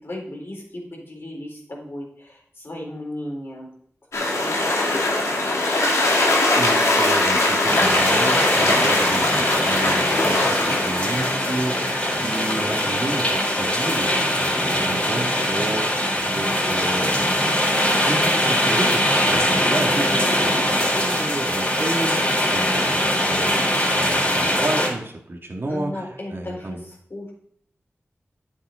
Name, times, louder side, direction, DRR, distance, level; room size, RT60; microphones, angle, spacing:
voice 1, 0.0-3.7 4.4-5.3 20.4-20.7 22.7-23.0 25.7-27.3, left 1 dB, 55° left, -2 dB, 4.1 m, -35 dB
sound 1, 4.1-15.6, left 2 dB, 90° left, 2.3 m, -22 dB
voice 2, 6.6-11.8 12.2-17.2 18.0-20.5 20.9-23.5 23.9-26.8, right 1 dB, 50° right, 1 dB, 2.3 m, -31 dB
sound 2, 7.7-24.9, equal, 25° left, 4.2 m, -22 dB
10.0 x 7.4 x 3.9 m, 0.64 s
cardioid pair, 50°, 5 cm